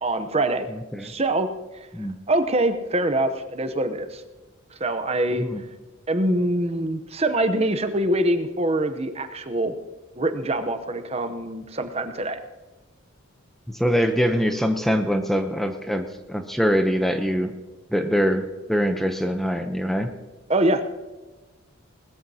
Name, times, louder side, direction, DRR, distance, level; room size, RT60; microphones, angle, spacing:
voice 1, 0.0-0.7 1.0-1.5 1.7-1.9 2.3-4.2 4.7-5.5 6.1-9.7 10.2-12.4 20.5-20.9, right 1 dB, 30° right, 8 dB, 0.8 m, -24 dB
voice 2, 13.7-17.5 17.9-20.1, equal, ahead, 6 dB, 0.7 m, -23 dB
19.5 x 14.0 x 2.8 m, 1.2 s
head